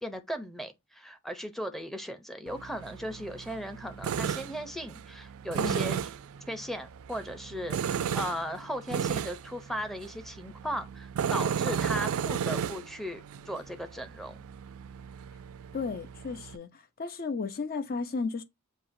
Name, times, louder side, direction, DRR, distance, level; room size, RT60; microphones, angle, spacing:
voice 1, 0.0-6.0 6.5-14.4, equal, ahead, 0.6 m, -37 dB
Tools, 2.5-16.6, right 7 dB, 85° right, 0.4 m, -34 dB
voice 2, 15.7-18.4, left 4 dB, 45° left, 0.5 m, -34 dB
7.3 x 2.8 x 2.6 m
head